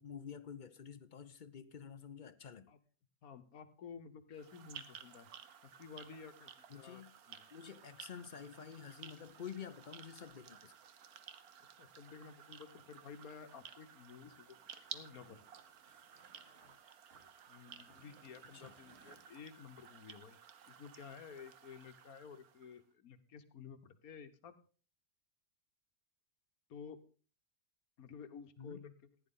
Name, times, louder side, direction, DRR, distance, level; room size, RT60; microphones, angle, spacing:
voice 1, 0.0-2.7 6.7-7.1 7.5-10.8 18.5-18.8 28.6-28.8, left 7 dB, 50° left, 13 dB, 0.6 m, -49 dB
voice 2, 3.2-5.3 5.6-7.5 11.8-14.6 14.9-15.4 17.5-20.4 20.7-24.6 26.7-27.0 28.0-28.9, left 6 dB, 75° left, 10 dB, 1.5 m, -53 dB
sound 1, 4.3-22.8, right 8 dB, 85° right, 1.4 m, -55 dB
sound 2, 9.2-11.2 12.2-12.3 12.7-12.8 13.1-16.8 17.1-19.5, right 2 dB, 55° right, 3.1 m, -70 dB
15.0 x 10.5 x 3.8 m, 0.37 s
omnidirectional pair, 1.5 m